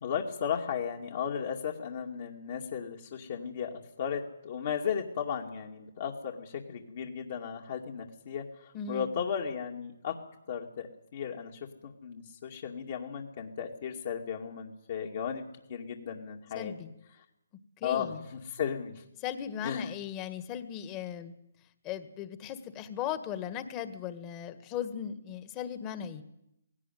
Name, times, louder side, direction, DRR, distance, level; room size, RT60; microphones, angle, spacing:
voice 1, 0.0-10.2 10.5-15.4 15.7-16.7 17.2-17.3 17.8-19.0 19.6-19.9, left 7 dB, 50° left, 1 dB, 2.4 m, -35 dB
voice 2, 8.7-9.1 16.6-16.9 17.8-18.2 19.2-21.3 21.8-26.2, left 9 dB, 25° left, 11 dB, 1.8 m, -37 dB
17.5 x 17.5 x 9.4 m, 0.82 s
figure-of-eight pair, 140°, 0 cm